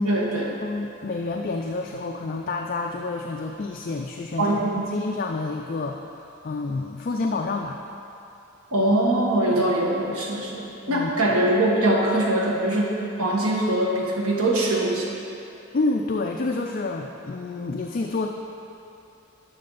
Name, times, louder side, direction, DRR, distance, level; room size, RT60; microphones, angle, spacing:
voice 1, 0.0-0.5 4.4-4.9 8.7-10.6 10.9-15.1, right 1 dB, 85° right, -3 dB, 1.4 m, -22 dB
voice 2, 0.6-7.8 10.9-11.1 15.7-18.3, left 3 dB, 40° left, 2 dB, 0.4 m, -29 dB
10.0 x 6.5 x 3.9 m, 2.8 s
head